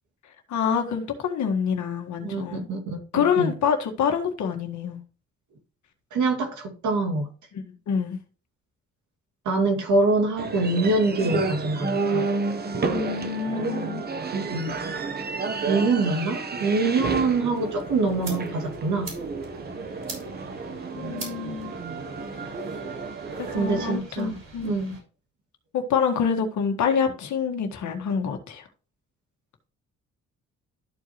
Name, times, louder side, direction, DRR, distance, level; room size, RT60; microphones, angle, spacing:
voice 1, 0.5-2.7 3.1-5.0 7.5-8.2 12.9-14.0 21.0-21.7 23.5-24.8 25.7-28.6, left 7 dB, 70° left, 1.7 m, -26 dB
voice 2, 2.2-3.5 6.1-7.3 9.5-12.3 14.3-14.8 15.7-19.1 23.5-25.0, right 3 dB, 70° right, 2.4 m, -25 dB
sound 1, 10.4-24.0, right 4 dB, 30° right, 1.0 m, -31 dB
sound 2, 17.5-25.0, right 3 dB, 55° right, 5.0 m, -44 dB
13.0 x 4.7 x 3.0 m
cardioid pair, 90°, 30 cm